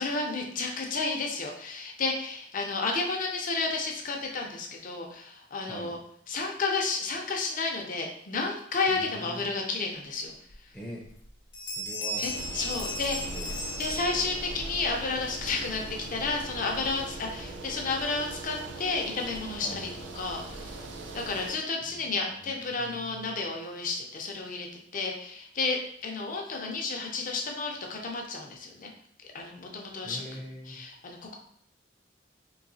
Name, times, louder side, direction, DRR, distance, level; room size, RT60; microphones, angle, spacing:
voice 1, 0.0-6.0 6.3-10.3 12.2-13.3 13.8-19.9 20.2-20.7 21.1-24.7 24.9-28.9 29.3-30.2 30.7-31.3, left 3 dB, 50° left, 1 dB, 0.6 m, -31 dB
voice 2, 8.9-9.5 10.7-11.1 11.6-12.3 13.1-13.5 19.6-19.9 21.8-23.4 30.0-30.8, equal, 5° left, -3 dB, 0.6 m, -44 dB
sound 1, 10.5-10.6 11.0-11.3 11.5-14.7, equal, 75° left, 0.9 m, -36 dB
sound 2, 12.2-21.5, right 2 dB, 85° right, 0.5 m, -40 dB
3.9 x 2.7 x 2.7 m, 0.66 s
head